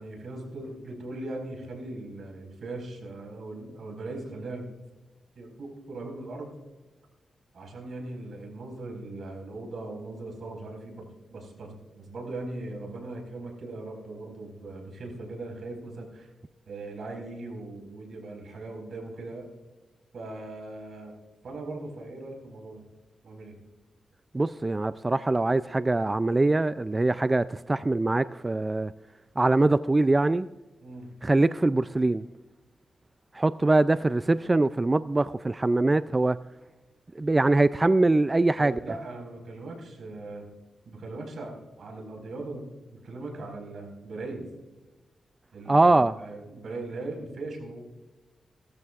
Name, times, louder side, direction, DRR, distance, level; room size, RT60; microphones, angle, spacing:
voice 1, 0.0-4.7 5.3-6.6 7.5-16.3 16.7-19.5 20.1-21.2 21.4-22.8 23.2-23.5 30.8-31.1 38.6-40.5 40.8-42.7 43.0-44.5 45.5-47.8, right 2 dB, 70° right, 1 dB, 4.8 m, -39 dB
voice 2, 24.3-28.9 29.4-30.5 31.2-32.2 33.3-36.4 37.2-38.7 45.7-46.1, right 2 dB, 25° right, 13 dB, 0.3 m, -23 dB
17.5 x 14.0 x 2.4 m, 1.2 s
cardioid pair, 90°, 0 cm